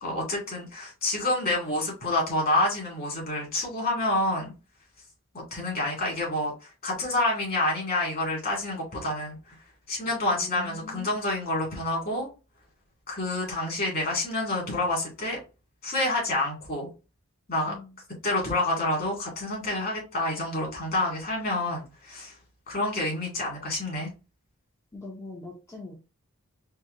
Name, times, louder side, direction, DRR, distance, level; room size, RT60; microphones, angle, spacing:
voice 1, 0.0-4.5 5.3-9.5 9.9-12.3 13.1-15.4 15.8-16.9 17.5-17.7 18.2-22.3 22.7-24.1, left 2 dB, 40° left, 2.3 m, -28 dB
voice 2, 10.3-11.1 17.7-17.9 24.9-26.0, left 2 dB, 15° left, 0.7 m, -41 dB
4.5 x 2.3 x 3.7 m
head